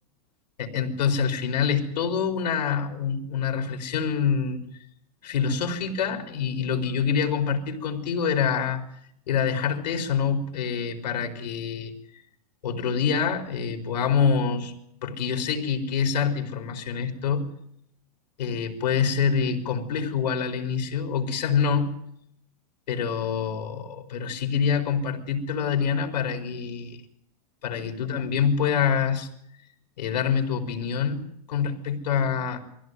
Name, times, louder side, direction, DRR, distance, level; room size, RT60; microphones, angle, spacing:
voice 1, 0.6-4.6 5.2-8.8 9.3-11.9 12.6-14.7 15.0-17.5 18.4-22.0 22.9-27.0 27.6-29.3 30.0-32.6, left 6 dB, 85° left, 5 dB, 4.3 m, -26 dB
24.0 x 16.0 x 9.4 m, 0.73 s
supercardioid pair, 175°, 21 cm